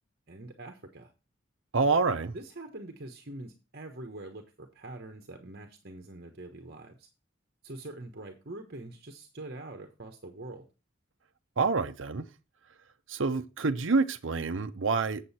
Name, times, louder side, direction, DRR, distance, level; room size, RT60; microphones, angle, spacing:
voice 1, 0.3-1.1 2.3-7.1 7.6-10.7, right 2 dB, 50° right, 1.2 m, -44 dB
voice 2, 1.7-2.3 11.6-12.2 13.1-15.2, right 4 dB, 75° right, 0.8 m, -27 dB
7.8 x 7.6 x 4.2 m
head